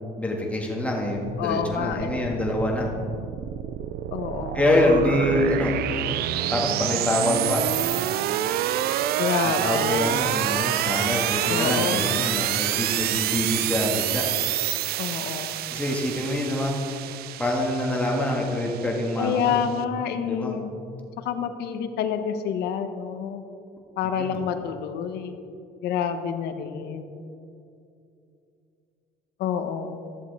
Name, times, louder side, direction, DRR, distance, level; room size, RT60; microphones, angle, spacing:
voice 1, 0.2-2.9 4.5-5.8 6.5-7.7 9.4-14.2 15.7-16.8 17.4-19.6 20.2-20.6 24.2-24.4, left 1 dB, 10° left, -2 dB, 1.7 m, -25 dB
voice 2, 1.4-2.3 4.1-4.6 9.2-10.0 11.5-12.0 15.0-15.6 19.2-20.7 21.2-23.4 24.0-25.4 25.8-27.2 29.4-30.0, left 8 dB, 75° left, 8 dB, 0.8 m, -28 dB
sound 1, 1.5-19.8, right 13 dB, 65° right, 0.4 m, -28 dB
14.0 x 7.4 x 3.4 m, 2.6 s
cardioid pair, 110°, 17 cm